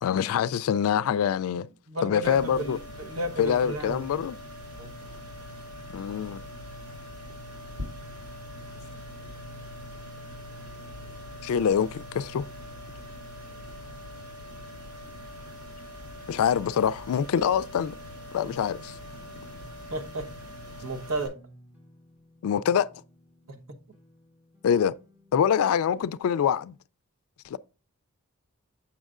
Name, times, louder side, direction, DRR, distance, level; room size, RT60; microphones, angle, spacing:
voice 1, 0.0-1.7 2.0-2.8 3.4-4.4 5.9-6.4 11.4-12.4 16.3-18.0 18.3-18.9 22.4-22.9 24.6-24.9 25.3-26.7 27.4-27.6, left 8 dB, 65° left, 0.3 m, -25 dB
voice 2, 1.9-4.2 4.8-4.9 19.9-20.3 20.8-21.3 23.5-23.6, right 1 dB, 65° right, 1.0 m, -33 dB
sound 1, 2.2-21.3, left 1 dB, 85° right, 2.9 m, -42 dB
sound 2, 18.4-26.4, left 1 dB, 5° right, 1.0 m, -56 dB
7.1 x 6.3 x 2.4 m
head